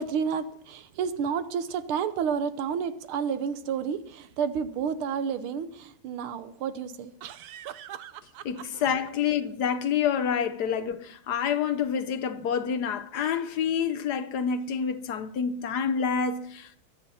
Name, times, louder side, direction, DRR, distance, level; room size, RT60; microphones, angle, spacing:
voice 1, 0.0-7.1 8.7-8.8 10.7-10.8, right 7 dB, 85° right, 1.8 m, -30 dB
sound 1, 4.2-4.3 7.2-9.1, right 11 dB, 70° right, 0.9 m, -42 dB
voice 2, 8.4-16.8, left 7 dB, 65° left, 1.1 m, -28 dB
23.5 x 8.8 x 4.2 m
omnidirectional pair, 2.3 m